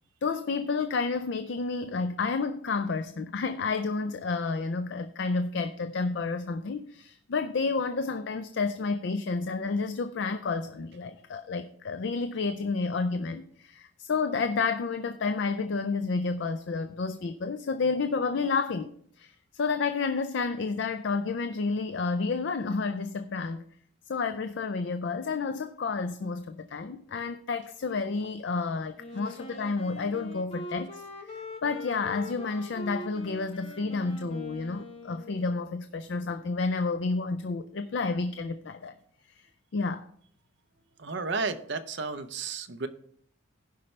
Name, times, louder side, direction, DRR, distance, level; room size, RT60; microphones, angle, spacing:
voice 1, 0.2-23.6 24.1-31.3 31.6-38.9 39.7-40.1, left 4 dB, 55° left, 9 dB, 0.4 m, -30 dB
Wind instrument woodwind instrument, 29.0-35.7, left 1 dB, 30° left, 1.0 m, -43 dB
voice 2, 41.0-42.9, right 4 dB, 55° right, 8 dB, 0.7 m, -32 dB
16.0 x 5.4 x 3.2 m, 0.65 s
head